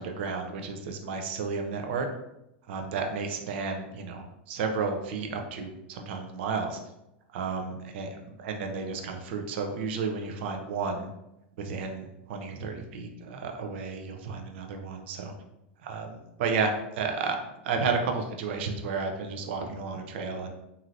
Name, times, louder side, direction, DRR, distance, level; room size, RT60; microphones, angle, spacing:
voice 1, 0.0-2.1 2.7-6.8 7.3-8.1 8.4-11.1 11.6-15.3 15.8-17.4 17.6-20.5, right 4 dB, 70° right, 4 dB, 0.5 m, -32 dB
3.0 x 2.6 x 2.6 m, 0.87 s
hypercardioid pair, 115°, 6 cm